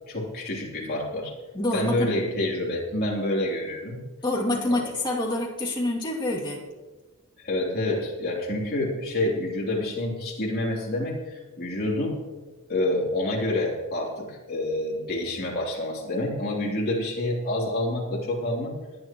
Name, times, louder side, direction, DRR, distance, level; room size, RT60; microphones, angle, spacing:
voice 1, 0.1-1.3 1.7-4.0 4.7-4.8 7.4-12.2 12.7-18.7, left 1 dB, 45° left, -3 dB, 3.3 m, -28 dB
voice 2, 1.5-2.1 4.2-6.6, left 1 dB, 20° left, -4 dB, 2.5 m, -27 dB
21.0 x 10.5 x 3.0 m, 1.3 s
head